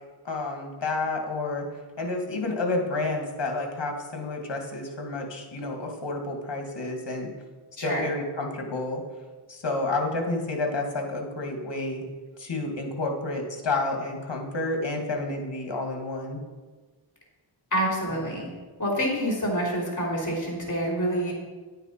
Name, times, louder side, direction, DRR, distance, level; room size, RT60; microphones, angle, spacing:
voice 1, 0.2-1.7 2.0-7.3 7.8-9.0 9.5-12.1 12.4-16.4, left 2 dB, 60° left, 2 dB, 2.0 m, -30 dB
voice 2, 17.7-18.5 18.8-21.3, equal, 35° left, -3 dB, 3.3 m, -27 dB
10.5 x 9.0 x 4.4 m, 1.3 s
wide cardioid pair, 110°, 49 cm